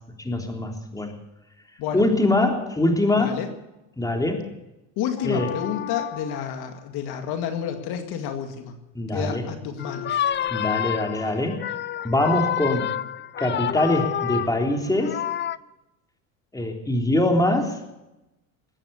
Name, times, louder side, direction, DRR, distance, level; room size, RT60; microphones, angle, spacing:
voice 1, 0.2-1.1 1.9-3.4 4.0-4.5 5.2-5.5 9.0-9.5 10.5-11.6 12.0-12.9 13.4-15.2 16.5-17.8, left 1 dB, 10° left, 2 dB, 3.3 m, -23 dB
voice 2, 3.2-3.5 5.0-8.7 9.1-10.2, left 8 dB, 65° left, 6 dB, 2.1 m, -30 dB
sound 1, 5.2-6.5 7.6-7.9 9.8-15.6, left 10 dB, 30° left, 0.5 m, -29 dB
21.0 x 9.1 x 7.1 m, 0.95 s
supercardioid pair, 100°, 40 cm